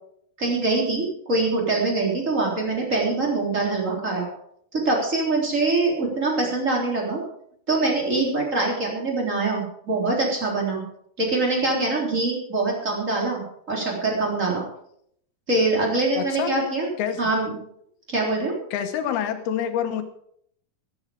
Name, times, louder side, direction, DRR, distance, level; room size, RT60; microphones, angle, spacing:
voice 1, 0.4-4.3 4.7-7.2 7.7-10.8 11.2-13.4 13.7-14.6 15.5-16.9 17.2-17.6 18.1-18.6, right 3 dB, 20° right, -1 dB, 3.5 m, -24 dB
voice 2, 16.2-16.6 17.0-17.2 18.7-20.0, left 9 dB, 75° left, 8 dB, 3.1 m, -27 dB
13.5 x 12.0 x 5.1 m, 0.68 s
omnidirectional pair, 4.5 m